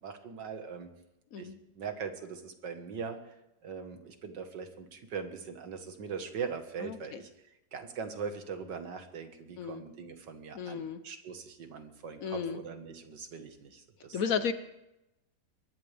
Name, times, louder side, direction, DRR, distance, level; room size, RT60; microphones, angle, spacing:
voice 1, 0.0-0.9 1.4-1.5 1.7-3.2 3.6-7.3 7.7-14.4, right 6 dB, 85° right, 6 dB, 2.2 m, -41 dB
voice 2, 6.8-7.2 9.6-9.8 10.5-11.0 12.2-12.6 14.1-14.5, left 6 dB, 60° left, 11 dB, 1.1 m, -33 dB
23.0 x 17.5 x 3.5 m, 0.91 s
omnidirectional pair, 1.9 m